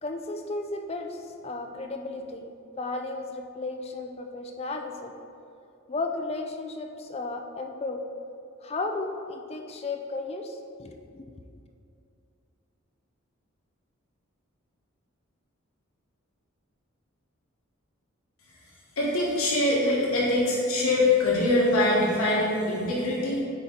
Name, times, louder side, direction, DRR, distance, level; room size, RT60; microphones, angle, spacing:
voice 1, 0.0-2.5 2.8-5.1 5.9-8.0 8.6-11.4, left 3 dB, 30° left, 5 dB, 0.4 m, -34 dB
voice 2, 19.0-23.4, left 2 dB, 85° left, -5 dB, 1.5 m, -23 dB
9.1 x 4.2 x 3.9 m, 2.5 s
head